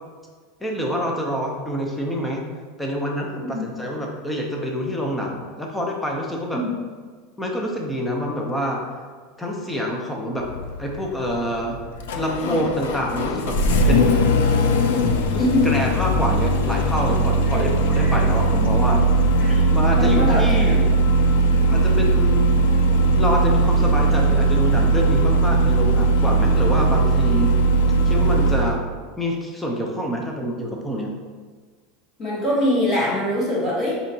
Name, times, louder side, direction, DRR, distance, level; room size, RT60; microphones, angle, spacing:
voice 1, 0.6-2.5 2.8-6.6 7.4-8.8 9.4-10.4 10.8-11.8 12.2-13.6 13.9-14.3 15.3-19.0 19.7-20.8 21.7-22.4 23.2-27.6 28.1-28.8 29.2-31.2, equal, 5° left, 0 dB, 0.5 m, -26 dB
Engine starting, 10.4-28.8, right 2 dB, 85° left, 0.3 m, -19 dB
voice 2, 15.4-15.7 17.4-17.6 18.0-18.2 18.5-18.6 19.4-19.6 19.9-20.8 32.2-34.0, left 1 dB, 25° left, -6 dB, 0.9 m, -23 dB
4.3 x 2.8 x 2.6 m, 1.5 s
supercardioid pair, 160°, 0 cm